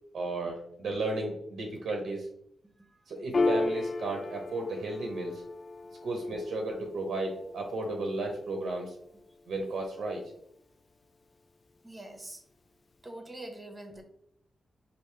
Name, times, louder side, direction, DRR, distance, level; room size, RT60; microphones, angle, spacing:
voice 1, 0.1-2.2 3.1-5.4 6.0-9.0 9.5-10.2, right 2 dB, 80° right, 2 dB, 0.7 m, -34 dB
Piano, 3.3-10.3, left 3 dB, 40° left, 0.3 m, -35 dB
voice 2, 11.8-12.4 13.0-14.0, right 1 dB, 20° right, 4 dB, 0.8 m, -44 dB
4.8 x 2.6 x 3.2 m, 0.74 s
wide cardioid pair, 120°, 0 cm